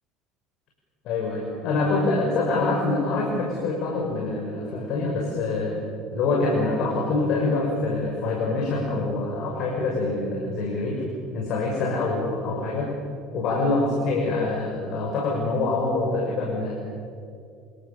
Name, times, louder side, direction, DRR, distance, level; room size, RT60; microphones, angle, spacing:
voice 1, 1.0-5.8 6.1-11.0 11.3-12.9 13.3-16.7, left 3 dB, 55° left, -1 dB, 6.1 m, -25 dB
28.0 x 27.0 x 7.1 m, 2.4 s
figure-of-eight pair, 65°, 0 cm